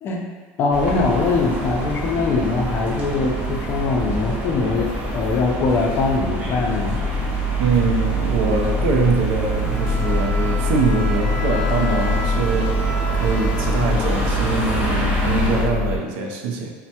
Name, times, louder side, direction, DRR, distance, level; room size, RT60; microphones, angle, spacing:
voice 1, 0.6-7.0, left 3 dB, 40° left, 0 dB, 0.4 m, -22 dB
sound 1, 0.7-15.7, equal, 20° right, 0.7 m, -27 dB
sound 2, 5.0-16.0, left 1 dB, 90° left, 0.5 m, -25 dB
voice 2, 7.6-12.8 13.1-16.7, right 4 dB, 70° right, 1 dB, 0.5 m, -23 dB
Bowed string instrument, 9.5-14.6, left 1 dB, 20° left, 0.8 m, -33 dB
3.2 x 2.1 x 2.7 m, 1.4 s
supercardioid pair, 140°, 6 cm